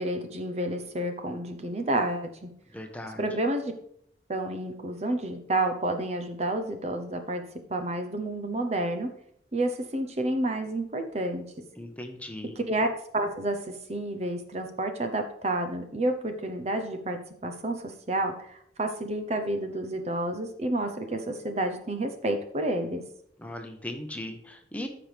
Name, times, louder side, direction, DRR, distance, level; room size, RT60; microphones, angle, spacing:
voice 1, 0.0-2.5 3.2-3.7 4.3-7.4 7.7-9.1 9.5-11.6 12.6-12.9 13.1-23.0, right 1 dB, 40° right, 6 dB, 0.8 m, -30 dB
voice 2, 2.7-3.2 11.8-12.6 23.4-24.9, left 1 dB, 10° left, 4 dB, 1.0 m, -38 dB
14.0 x 6.0 x 3.5 m, 0.70 s
head